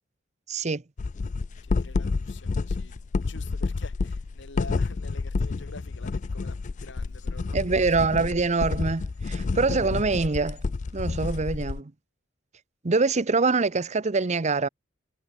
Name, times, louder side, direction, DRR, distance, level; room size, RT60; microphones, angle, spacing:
voice 1, 0.5-0.8 7.5-10.6 10.9-11.9 12.8-14.7, right 4 dB, 35° right, 0.8 m, -24 dB
sound 1, 1.0-11.8, left 4 dB, 40° left, 0.4 m, -29 dB
voice 2, 1.6-3.0 3.3-8.1, left 3 dB, 70° left, 4.0 m, -47 dB
head